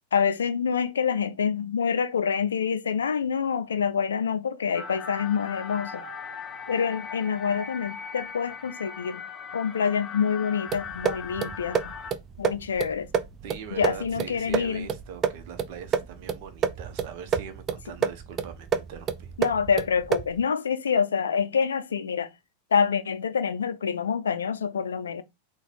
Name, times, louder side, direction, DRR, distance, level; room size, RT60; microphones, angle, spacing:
voice 1, 0.1-6.0 6.7-9.2 9.5-11.9 12.4-13.1 13.7-14.9 19.4-22.3 22.7-25.2, left 6 dB, 70° left, 0.4 m, -26 dB
sound 1, 4.7-12.1, left 5 dB, 25° left, 0.6 m, -39 dB
sound 2, 10.7-20.4, right 7 dB, 25° right, 0.4 m, -30 dB
voice 2, 13.4-19.3, right 7 dB, 45° right, 0.8 m, -42 dB
4.1 x 2.3 x 4.1 m
figure-of-eight pair, 90°, 0 cm